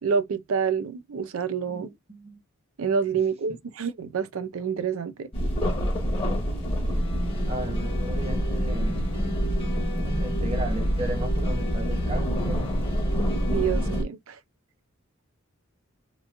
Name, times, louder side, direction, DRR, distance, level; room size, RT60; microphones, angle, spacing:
voice 1, 0.0-1.9 2.8-5.3 13.5-14.4, right 6 dB, 80° right, 0.5 m, -28 dB
voice 2, 1.7-2.4 6.2-6.5 7.5-9.0 9.8-12.7, right 1 dB, 30° right, 0.9 m, -36 dB
sound 1, 5.3-14.0, equal, 25° left, 0.9 m, -26 dB
sound 2, 6.0-12.7, equal, ahead, 0.3 m, -39 dB
2.9 x 2.5 x 2.4 m
head